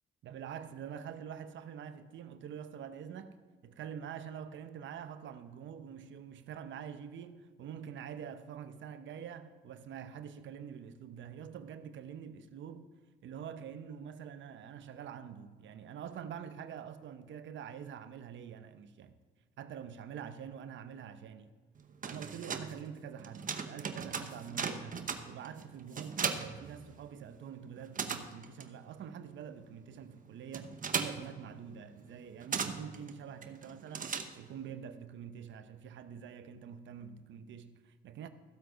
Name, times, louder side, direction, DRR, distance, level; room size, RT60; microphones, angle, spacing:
voice 1, 0.2-3.4 3.6-12.9 13.2-19.2 19.6-21.5 22.0-38.3, right 8 dB, 70° right, 0.8 m, -46 dB
sound 1, 21.8-27.4 27.6-34.7, right 6 dB, 40° right, 1.0 m, -39 dB
15.0 x 7.7 x 5.0 m
cardioid pair, 90°, 20 cm